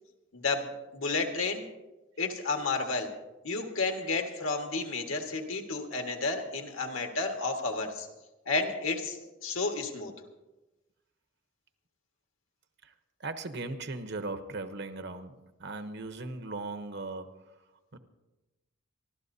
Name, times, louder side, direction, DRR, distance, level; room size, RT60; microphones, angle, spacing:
voice 1, 0.3-1.6 2.2-3.1 3.4-8.1 8.4-10.1, left 3 dB, 75° left, 3 dB, 1.6 m, -31 dB
voice 2, 13.2-17.4 17.9-18.0, right 3 dB, 55° right, 9 dB, 0.9 m, -38 dB
27.0 x 12.5 x 2.7 m, 1.1 s
head